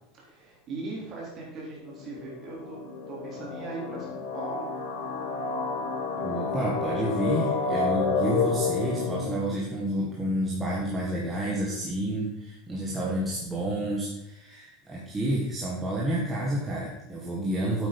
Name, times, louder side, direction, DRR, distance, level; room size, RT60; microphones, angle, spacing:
voice 1, 0.1-2.8 3.1-4.7, right 3 dB, 30° right, -3 dB, 3.7 m, -39 dB
sound 1, 1.8-9.4, left 4 dB, 60° left, 2.0 m, -30 dB
voice 2, 6.2-17.9, right 1 dB, 10° right, -5 dB, 1.6 m, -29 dB
8.8 x 8.3 x 5.3 m, 0.90 s
supercardioid pair, 175°, 0 cm